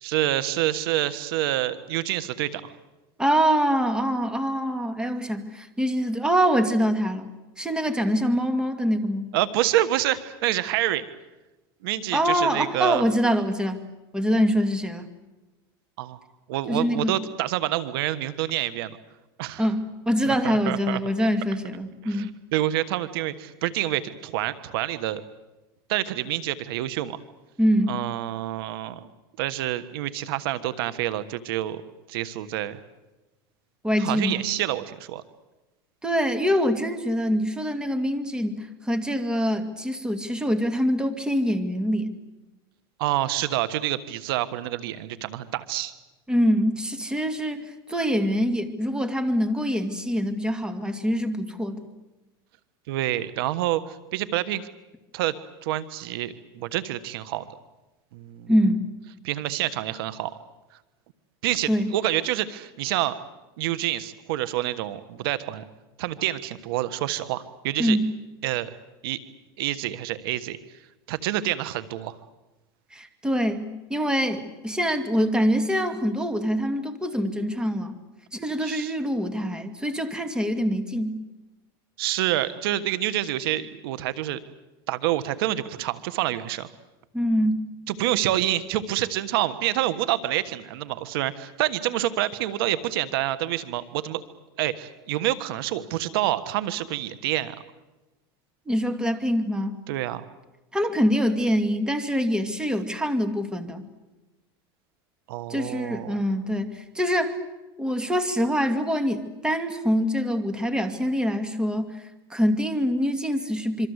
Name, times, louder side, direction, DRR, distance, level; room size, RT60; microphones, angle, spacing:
voice 1, 0.0-2.7 9.3-11.0 11.8-13.0 16.0-16.2 16.5-19.0 19.4-19.6 20.3-21.0 22.0-25.2 25.9-27.2 27.9-29.1 29.4-31.8 32.1-32.8 34.0-35.2 43.0-45.9 52.9-54.7 55.1-55.3 55.6-57.5 58.1-58.5 59.2-60.3 61.4-63.1 63.6-65.6 66.0-68.0 68.4-68.7 69.0-69.2 69.6-70.6 71.1-72.1 78.6-78.9 82.0-84.4 84.9-86.7 87.9-94.2 94.6-97.5 99.9-100.2 105.3-106.2, right 14 dB, 80° right, 14 dB, 1.4 m, -27 dB
voice 2, 3.2-7.3 7.6-9.3 12.1-13.8 14.1-15.1 16.7-17.2 19.6-22.3 27.6-28.0 33.8-34.5 36.0-42.2 46.3-51.9 58.5-58.8 61.7-61.9 67.8-68.1 72.9-77.9 78.3-81.1 87.1-87.6 98.7-99.8 100.7-103.9 105.5-107.3 107.8-112.0 112.3-113.9, equal, 5° right, 8 dB, 2.3 m, -24 dB
26.0 x 24.5 x 8.2 m, 1.1 s
supercardioid pair, 135°, 12 cm